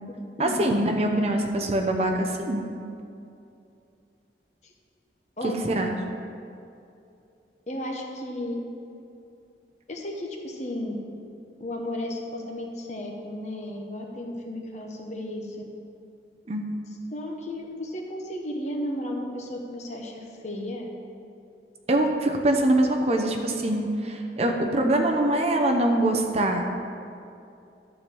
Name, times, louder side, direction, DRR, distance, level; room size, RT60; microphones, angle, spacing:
voice 1, 0.4-2.6 5.4-5.9 16.5-16.6 21.9-26.7, right 1 dB, 35° right, 2 dB, 0.7 m, -23 dB
voice 2, 5.4-5.7 7.7-8.6 9.9-10.9 11.6-15.6 17.1-20.9, left 1 dB, 40° left, 1 dB, 1.1 m, -34 dB
11.5 x 4.6 x 7.1 m, 2.6 s
head